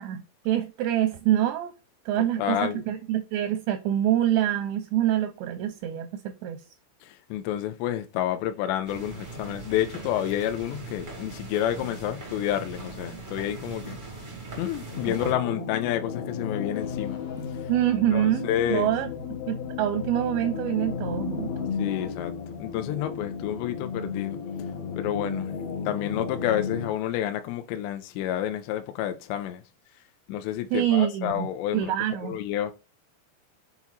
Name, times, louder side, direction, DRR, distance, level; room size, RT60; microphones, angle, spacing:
voice 1, 0.0-1.7 2.1-6.6 15.1-15.6 17.7-19.1 19.5-21.5 30.7-32.4, right 12 dB, 85° right, 2.6 m, -26 dB
voice 2, 2.4-2.8 7.0-14.0 14.6-17.2 18.1-18.9 21.8-22.3 22.6-24.4 25.0-25.5 25.9-29.6 30.3-31.9 32.2-32.7, left 11 dB, 85° left, 2.7 m, -29 dB
sound 1, 8.8-15.3, right 3 dB, 60° right, 0.5 m, -40 dB
sound 2, 14.9-26.9, left 6 dB, 65° left, 2.7 m, -34 dB
sound 3, 16.7-23.6, left 5 dB, 40° left, 2.7 m, -47 dB
7.1 x 4.5 x 4.0 m
omnidirectional pair, 5.5 m